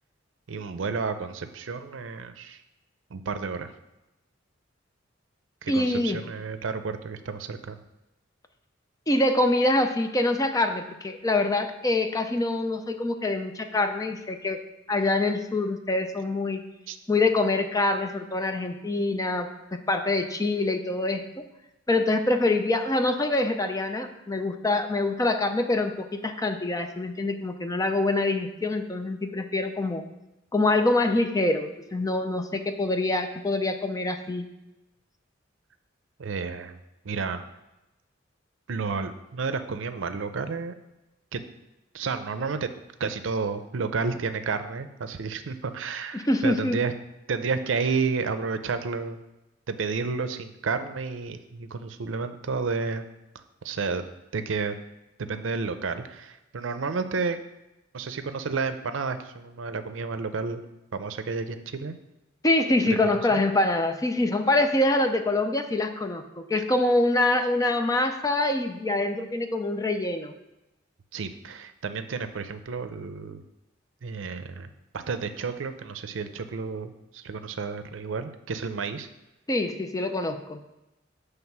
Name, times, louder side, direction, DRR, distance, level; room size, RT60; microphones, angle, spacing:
voice 1, 0.5-2.6 3.1-3.7 5.6-7.8 16.9-17.0 36.2-36.8 37.0-37.5 38.7-40.7 41.3-41.4 41.9-42.7 43.0-46.9 47.3-49.2 49.7-53.0 53.6-54.0 54.3-54.8 55.2-57.4 57.9-60.6 60.9-62.0 62.9-63.0 63.3-63.4 71.1-73.4 74.0-79.1, right 4 dB, 75° right, 10 dB, 0.5 m, -31 dB
voice 2, 5.7-6.2 9.1-14.6 14.9-16.6 17.1-19.5 19.9-21.4 21.9-30.0 30.5-34.5 46.1-46.8 62.4-70.3 79.5-80.6, left 2 dB, 20° left, 6 dB, 0.5 m, -25 dB
7.3 x 3.3 x 5.9 m, 0.95 s
head